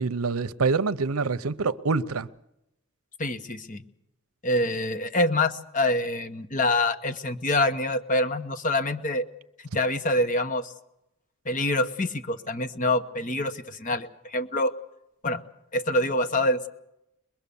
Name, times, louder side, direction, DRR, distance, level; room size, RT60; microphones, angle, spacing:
voice 1, 0.0-2.3, right 4 dB, 80° right, 0.7 m, -26 dB
voice 2, 3.2-3.8 4.4-9.3 9.7-10.7 11.4-14.7 15.2-15.4 15.7-16.7, left 1 dB, 35° left, 1.2 m, -26 dB
22.5 x 22.0 x 7.0 m
head